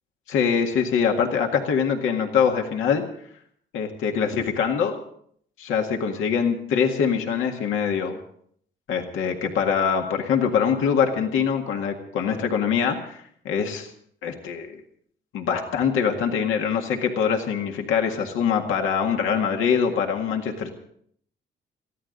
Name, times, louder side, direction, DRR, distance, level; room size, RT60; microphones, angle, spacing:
voice 1, 0.3-3.0 3.7-5.0 5.6-8.2 8.9-13.9 14.2-14.8 15.3-20.7, left 7 dB, 90° left, 3 dB, 1.9 m, -23 dB
22.5 x 15.0 x 3.9 m, 0.64 s
cardioid pair, 90°, 20 cm